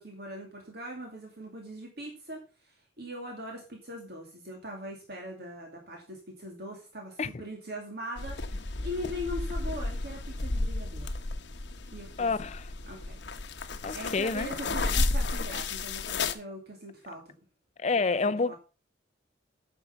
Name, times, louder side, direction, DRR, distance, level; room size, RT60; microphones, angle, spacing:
voice 1, 0.0-11.1 11.9-12.5 12.9-13.2 13.9-17.3 18.1-18.6, equal, 55° right, 2.4 m, -41 dB
sound 1, 8.2-16.3, left 3 dB, 60° left, 1.0 m, -32 dB
voice 2, 12.2-12.7 13.8-14.5 17.8-18.5, left 4 dB, 35° left, 0.5 m, -28 dB
9.2 x 6.9 x 5.6 m
head